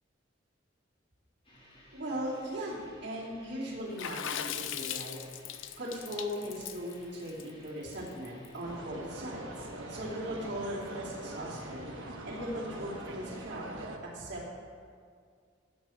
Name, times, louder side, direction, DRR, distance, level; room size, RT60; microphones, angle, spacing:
sound 1, 1.4-13.6, equal, 30° left, 2.9 m, -57 dB
voice 1, 1.9-5.2 5.8-13.6 14.1-14.6, equal, 60° right, -7 dB, 3.2 m, -39 dB
Water / Splash splatter, 4.0-8.5, left 9 dB, 80° left, 0.5 m, -39 dB
sound 2, 8.6-14.0, right 1 dB, 85° right, 1.2 m, -43 dB
16.5 x 6.6 x 4.6 m, 2.1 s
head